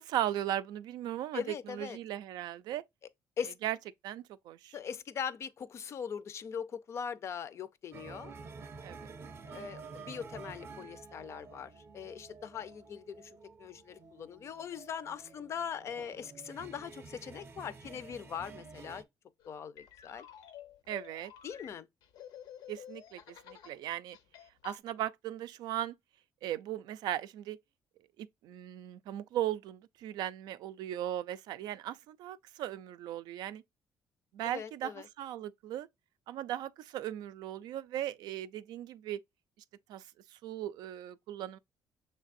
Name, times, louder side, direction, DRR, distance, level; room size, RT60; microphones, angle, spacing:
voice 1, 0.0-2.8 3.6-3.8 4.0-4.8 8.8-9.2 20.9-21.3 22.7-24.2 24.6-25.9 26.4-27.6 28.2-33.6 34.3-34.9 35.2-35.9 36.3-39.2 39.9-41.6, right 12 dB, 85° right, 0.4 m, -37 dB
voice 2, 1.3-2.0 3.4-3.6 4.7-8.3 9.4-19.0 19.5-20.3 21.4-21.9 34.4-35.1, left 7 dB, 45° left, 0.4 m, -41 dB
sound 1, 7.9-19.0, right 4 dB, 35° right, 0.6 m, -50 dB
sound 2, 19.4-23.8 24.1-24.8, left 10 dB, 85° left, 0.7 m, -51 dB
6.4 x 3.3 x 2.5 m
cardioid pair, 145°, 7 cm